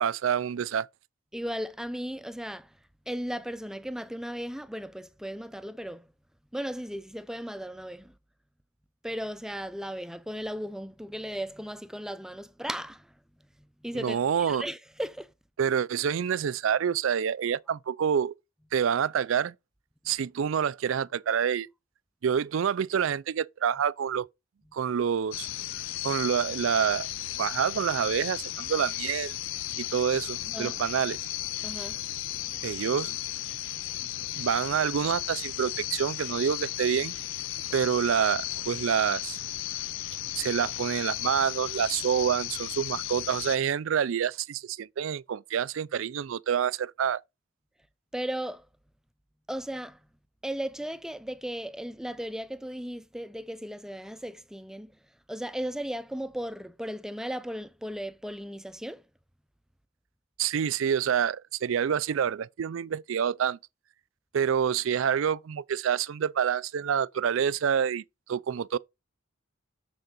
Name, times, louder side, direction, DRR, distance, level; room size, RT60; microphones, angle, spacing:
voice 1, 0.0-0.9 13.9-14.6 15.6-18.4 18.7-19.5 20.1-21.7 22.2-24.2 24.7-25.5 26.0-27.1 27.4-29.3 29.8-31.2 32.6-33.2 34.4-37.1 37.7-39.4 40.4-47.2 60.4-63.6 64.3-68.0 68.3-68.8, right 8 dB, 70° right, 0.4 m, -27 dB
voice 2, 1.3-2.7 3.1-6.1 6.5-8.1 9.0-13.1 13.8-15.3 30.5-30.8 31.6-32.0 48.1-48.7 49.5-50.0 50.4-54.9 55.3-59.0, equal, 5° right, 0.5 m, -36 dB
sound 1, 25.3-43.6, left 14 dB, 70° left, 0.4 m, -35 dB
7.0 x 6.5 x 3.8 m
head